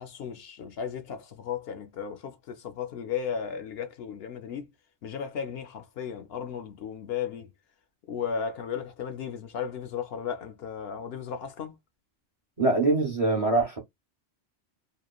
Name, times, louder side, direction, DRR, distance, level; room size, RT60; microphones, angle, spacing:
voice 1, 0.0-4.7 5.0-7.5 8.1-11.7, left 7 dB, 65° left, 0.7 m, -35 dB
voice 2, 12.6-13.8, right 2 dB, 40° right, 0.7 m, -23 dB
2.9 x 2.1 x 2.3 m
omnidirectional pair, 1.2 m